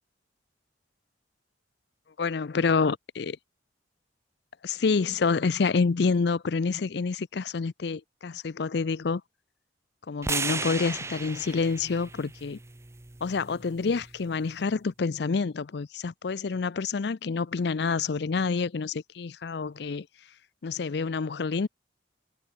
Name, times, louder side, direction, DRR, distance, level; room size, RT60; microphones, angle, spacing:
voice 1, 2.2-3.4 4.6-9.2 10.1-12.6 13.2-20.1 20.6-21.7, left 4 dB, 60° left, 0.5 m, -28 dB
sound 1, 10.2-14.4, right 4 dB, 15° right, 0.6 m, -36 dB
head